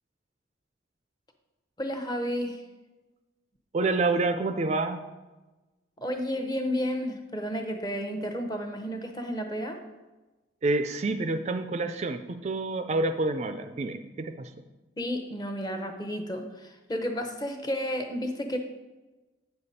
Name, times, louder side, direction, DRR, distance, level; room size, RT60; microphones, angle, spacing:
voice 1, 1.8-2.6 6.0-9.8 15.0-18.6, equal, 20° left, 5 dB, 0.8 m, -32 dB
voice 2, 3.7-5.0 10.6-14.5, right 3 dB, 35° right, 9 dB, 0.4 m, -28 dB
8.0 x 6.8 x 4.2 m, 1.2 s
head